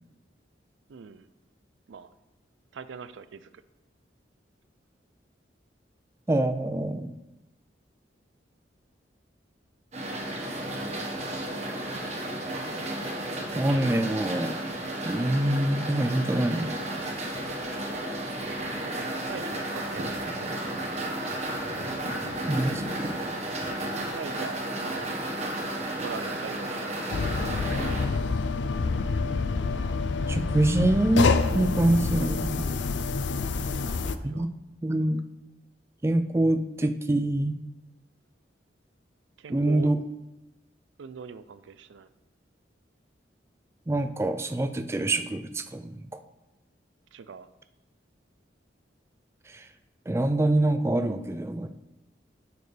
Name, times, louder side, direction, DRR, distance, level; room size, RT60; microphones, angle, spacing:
voice 1, 0.9-1.3 1.9-2.1 2.7-3.5 18.8-20.4 24.2-25.1 26.0-26.9 27.7-28.3 32.1-32.3 33.5-34.5 39.4-39.9 41.0-42.1 47.1-47.5, right 5 dB, 90° right, 14 dB, 0.4 m, -42 dB
voice 2, 6.3-7.1 13.5-14.6 15.0-16.8 22.5-23.1 30.3-32.7 34.2-34.5 34.8-35.2 36.0-37.6 39.5-40.0 43.9-46.1 49.5-49.7 50.1-51.7, right 1 dB, 15° right, 8 dB, 0.3 m, -25 dB
sound 1, 9.9-28.0, right 1 dB, 35° right, 1.3 m, -33 dB
sound 2, 27.1-34.2, left 4 dB, 75° left, 0.4 m, -27 dB
9.2 x 6.5 x 3.3 m, 0.97 s
head